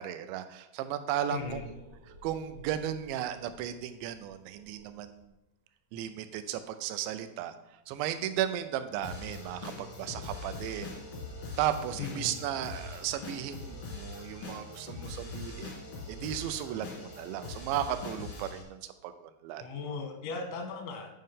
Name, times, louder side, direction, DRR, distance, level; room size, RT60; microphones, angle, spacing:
voice 1, 0.0-1.7 2.2-5.3 5.9-7.5 7.9-11.0 11.6-15.8 16.1-19.1 19.4-19.6, right 11 dB, 85° right, 10 dB, 2.8 m, -35 dB
voice 2, 1.3-1.7 12.0-12.4 19.6-21.1, left 4 dB, 90° left, 4 dB, 3.5 m, -37 dB
sound 1, 1.4-5.3 8.0-8.2 8.5-8.6 8.8-18.2, right 1 dB, 70° right, 2.3 m, -53 dB
sound 2, 9.0-18.6, left 3 dB, 75° left, 1.2 m, -42 dB
9.5 x 5.4 x 3.7 m, 0.93 s
omnidirectional pair, 5.1 m